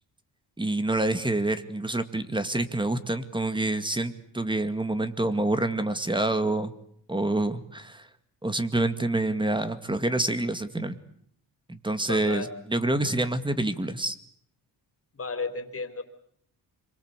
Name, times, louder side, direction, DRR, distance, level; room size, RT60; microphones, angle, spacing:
voice 1, 0.6-6.7 7.1-8.1 8.4-11.0 11.7-14.2, right 2 dB, 10° right, 10 dB, 2.1 m, -27 dB
voice 2, 12.1-12.5 15.1-16.0, left 4 dB, 35° left, 8 dB, 4.0 m, -33 dB
27.0 x 23.5 x 8.2 m, 0.67 s
cardioid pair, 105°, 41 cm